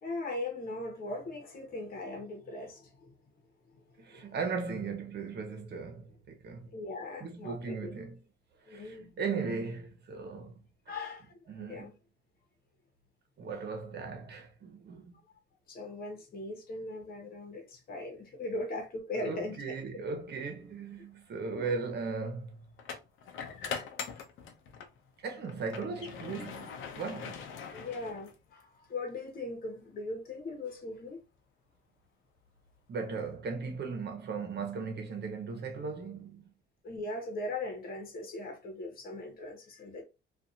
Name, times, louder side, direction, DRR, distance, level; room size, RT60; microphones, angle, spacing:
voice 1, 0.0-3.1 3.7-3.8 4.1-4.3 6.7-7.9 8.7-9.1 10.9-11.9 15.7-19.6 19.9-20.0 27.7-31.2 36.8-40.0, left 2 dB, 50° left, 1.1 m, -39 dB
voice 2, 4.0-6.7 7.2-8.2 8.7-10.6 10.9-11.0 11.5-11.9 13.4-15.2 19.1-22.7 25.2-27.4 32.9-36.5, right 4 dB, 55° right, 1.0 m, -37 dB
sound 1, 20.7-20.9 22.8-25.0 25.4-28.6, left 6 dB, 80° left, 0.6 m, -42 dB
2.5 x 2.5 x 2.7 m
cardioid pair, 90°, 20 cm